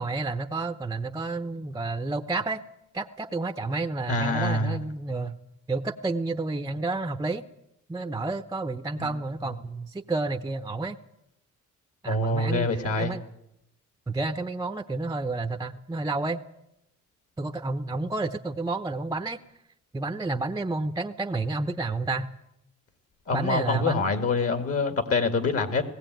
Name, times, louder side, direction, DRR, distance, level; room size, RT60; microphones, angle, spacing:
voice 1, 0.0-2.6 2.9-5.3 5.7-7.4 7.9-11.0 12.0-13.2 14.1-16.4 17.4-19.4 19.9-22.3 23.3-24.1, right 3 dB, 10° right, 6 dB, 0.9 m, -30 dB
voice 2, 4.1-4.8 9.0-9.1 12.1-13.2 23.3-25.8, left 3 dB, 50° left, 8 dB, 2.3 m, -25 dB
18.5 x 16.0 x 9.3 m, 0.83 s
cardioid pair, 90°, 30 cm